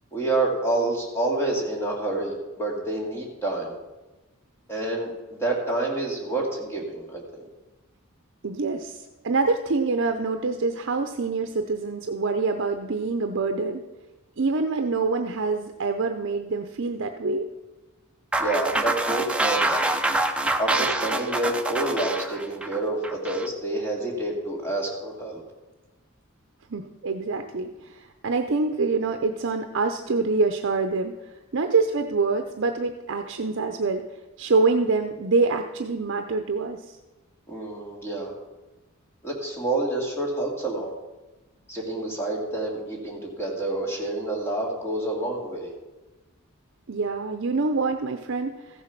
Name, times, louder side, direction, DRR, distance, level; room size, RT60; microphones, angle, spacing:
voice 1, 0.1-3.7 4.7-7.5 18.4-19.9 20.6-25.4 37.5-38.3 39.2-40.9 41.7-45.7, right 2 dB, 10° left, -2 dB, 2.4 m, -28 dB
voice 2, 8.4-13.8 14.4-17.5 26.7-31.1 31.5-34.0 34.4-37.0 46.9-48.8, right 3 dB, 60° right, 6 dB, 0.7 m, -25 dB
sound 1, 18.3-23.5, right 2 dB, 5° right, 0.6 m, -26 dB
14.5 x 7.3 x 5.9 m, 1.1 s
head